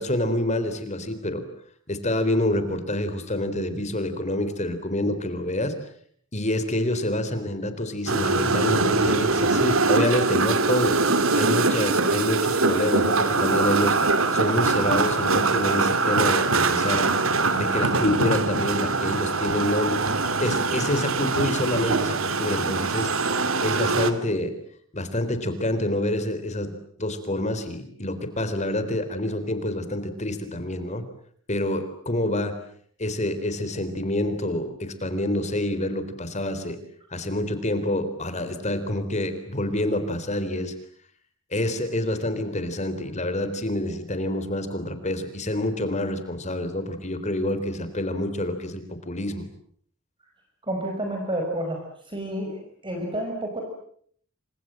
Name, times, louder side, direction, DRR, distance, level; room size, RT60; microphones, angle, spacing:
voice 1, 0.0-1.4 1.9-5.7 6.3-11.0 11.3-14.0 14.3-17.1 17.5-20.0 20.4-23.1 23.6-24.5 24.9-26.7 27.0-31.0 31.5-32.6 33.0-36.8 37.1-40.7 41.5-49.4, left 1 dB, 35° left, 10 dB, 3.9 m, -27 dB
sound 1, 8.1-24.1, right 3 dB, 80° right, 2.6 m, -23 dB
voice 2, 50.7-51.8 52.1-52.6 52.8-53.6, right 1 dB, 25° right, 2 dB, 5.6 m, -29 dB
28.5 x 26.5 x 7.8 m, 0.62 s
head